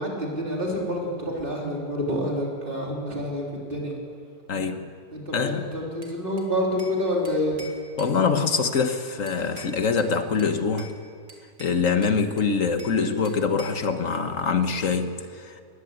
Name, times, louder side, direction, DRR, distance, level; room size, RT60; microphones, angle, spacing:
voice 1, 0.0-3.9 5.1-7.6, equal, 30° right, -2 dB, 3.9 m, -28 dB
voice 2, 4.5-4.9 5.3-5.7 8.0-10.9 11.6-15.6, left 5 dB, 55° left, 8 dB, 1.5 m, -24 dB
Bell / Glass, 6.0-7.0 7.2-8.9 9.3-10.1 10.4-11.0 11.3-13.0 13.2-13.9, equal, 50° right, 3.2 m, -46 dB
22.0 x 16.0 x 9.5 m, 2.3 s
omnidirectional pair, 1.8 m